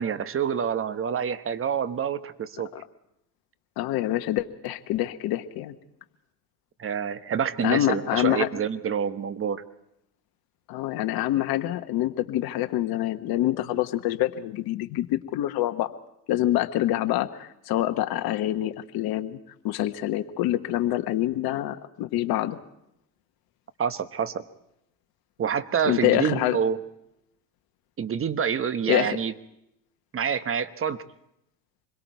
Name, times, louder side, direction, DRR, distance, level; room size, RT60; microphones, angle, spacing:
voice 1, 0.0-2.7 6.8-9.6 23.8-24.4 25.4-26.8 28.0-29.3 30.1-31.0, right 7 dB, 25° right, 13 dB, 1.1 m, -27 dB
voice 2, 3.8-5.8 7.6-8.5 10.7-15.9 16.3-19.4 19.6-22.6 25.8-26.6 28.9-29.2, left 14 dB, 50° left, 9 dB, 1.2 m, -26 dB
26.0 x 22.0 x 4.6 m, 0.80 s
hypercardioid pair, 75°, 48 cm